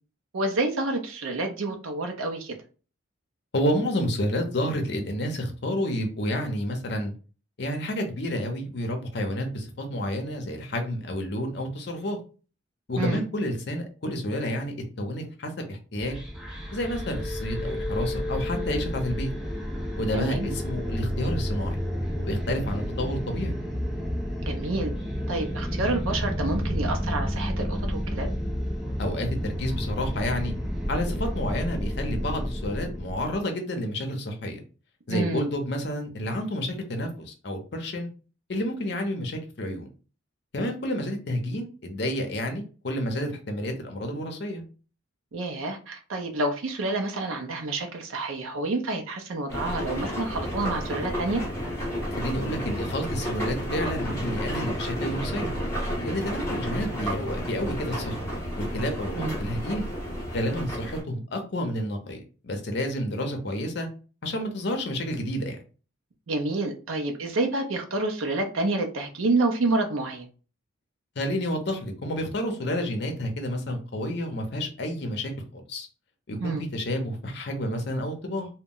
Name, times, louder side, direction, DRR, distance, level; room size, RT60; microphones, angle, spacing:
voice 1, 0.3-2.6 13.0-13.2 20.1-20.5 24.4-24.9 25.3-28.3 35.1-35.5 45.3-51.4 59.2-59.3 66.3-70.3 76.4-76.6, right 2 dB, 85° right, 3 dB, 0.6 m, -28 dB
voice 2, 3.5-7.1 7.6-12.2 12.9-16.2 16.7-19.3 20.0-21.8 22.3-23.6 29.0-30.5 30.9-34.6 35.1-38.1 38.5-39.9 40.5-44.6 52.2-55.5 56.0-58.2 58.6-59.8 60.3-63.9 64.2-65.6 71.2-75.9 76.3-78.5, left 1 dB, 55° left, 4 dB, 0.6 m, -30 dB
sound 1, 16.0-33.4, equal, ahead, 0.3 m, -30 dB
sound 2, 49.5-61.0, equal, 15° left, 0.8 m, -31 dB
2.2 x 2.0 x 3.6 m, 0.36 s
head